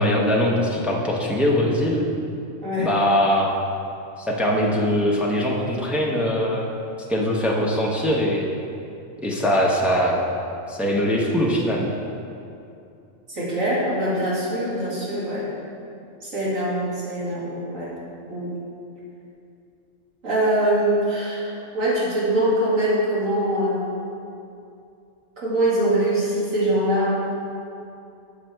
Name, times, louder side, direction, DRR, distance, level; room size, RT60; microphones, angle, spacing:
voice 1, 0.0-2.0 2.8-3.5 4.2-6.7 7.1-8.4 9.2-10.2 10.7-11.9, equal, ahead, -3 dB, 0.7 m, -21 dB
voice 2, 2.6-2.9 13.3-15.5 16.2-17.9 18.3-18.5 20.2-23.9 25.4-27.1, right 1 dB, 80° right, -8 dB, 2.5 m, -23 dB
7.5 x 6.4 x 4.5 m, 2.6 s
omnidirectional pair, 1.4 m